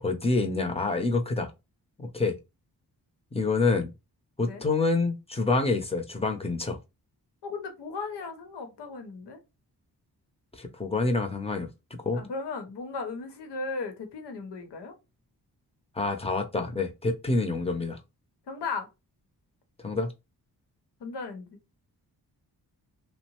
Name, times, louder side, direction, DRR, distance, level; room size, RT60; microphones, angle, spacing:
voice 1, 0.0-1.5 2.0-2.4 3.3-3.9 4.4-6.8 10.5-11.7 12.0-12.2 15.9-18.0 19.8-20.1, left 3 dB, 15° left, 0.8 m, -27 dB
voice 2, 7.4-9.4 12.1-14.9 18.5-18.9 21.0-21.6, left 4 dB, 80° left, 0.9 m, -36 dB
2.7 x 2.1 x 2.9 m
cardioid pair, 50°, 41 cm